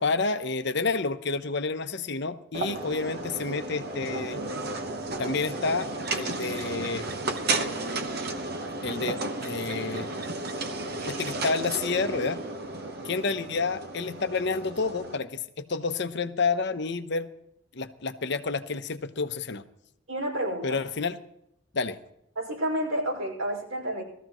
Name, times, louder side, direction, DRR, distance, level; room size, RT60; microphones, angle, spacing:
voice 1, 0.0-4.4 5.2-7.1 8.8-10.2 11.1-12.4 13.0-17.3 17.7-19.6 20.6-21.2 21.7-22.0, left 4 dB, 55° left, 10 dB, 0.8 m, -29 dB
sound 1, 2.5-15.2, right 2 dB, 50° right, 1.0 m, -33 dB
voice 2, 20.1-20.8 22.4-24.0, right 1 dB, 80° right, -2 dB, 5.4 m, -30 dB
20.0 x 14.5 x 3.1 m, 0.77 s
head